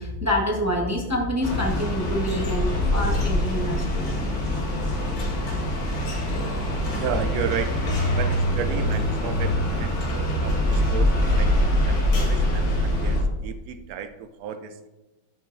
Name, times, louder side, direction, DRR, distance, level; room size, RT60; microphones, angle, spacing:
voice 1, 0.0-4.1, left 1 dB, 20° right, 0 dB, 0.5 m, -26 dB
sound 1, 1.4-13.2, left 1 dB, 50° left, 1.7 m, -24 dB
voice 2, 6.3-6.6 6.9-10.0 10.4-14.9, right 7 dB, 90° right, 8 dB, 0.8 m, -33 dB
13.0 x 6.1 x 2.5 m, 1.0 s
omnidirectional pair, 2.2 m